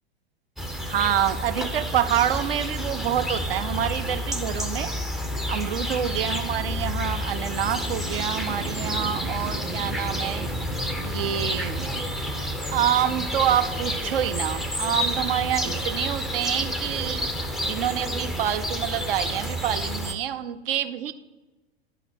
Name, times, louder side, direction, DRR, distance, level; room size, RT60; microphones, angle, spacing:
sound 1, 0.6-20.1, equal, ahead, 0.4 m, -29 dB
voice 1, 0.9-4.9 5.5-10.5 11.0-12.0 12.7-17.3 17.6-21.1, right 10 dB, 60° right, 11 dB, 0.6 m, -27 dB
11.0 x 4.0 x 7.4 m, 1.2 s
figure-of-eight pair, 95°, 32 cm